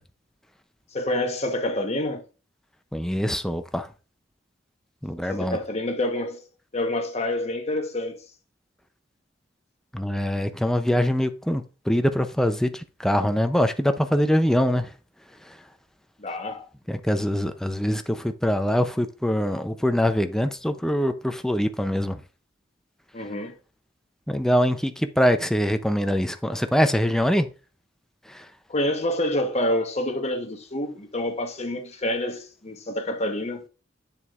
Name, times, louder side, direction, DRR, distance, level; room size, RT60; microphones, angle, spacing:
voice 1, 0.9-2.3 5.3-6.4 6.7-8.2 16.2-16.7 23.1-23.5 28.7-33.7, left 1 dB, 35° left, 1.1 m, -27 dB
voice 2, 2.9-3.9 5.0-5.6 9.9-14.9 15.4-15.6 16.9-22.2 24.3-27.5 28.3-28.5, equal, 5° left, 0.5 m, -23 dB
8.3 x 7.1 x 2.5 m
head